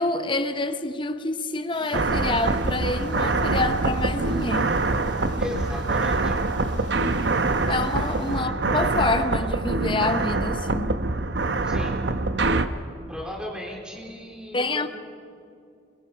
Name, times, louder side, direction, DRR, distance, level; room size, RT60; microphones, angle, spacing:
voice 1, 0.0-4.8 7.7-11.0 14.5-14.9, left 2 dB, 25° left, 0.8 m, -27 dB
sound 1, 1.7-8.4, right 1 dB, 25° right, 4.6 m, -44 dB
sound 2, 1.9-12.7, right 3 dB, 70° right, 0.9 m, -24 dB
voice 2, 5.4-6.4 8.3-8.5 11.6-11.9 13.1-14.9, left 1 dB, 5° right, 3.7 m, -36 dB
27.5 x 22.5 x 5.7 m
head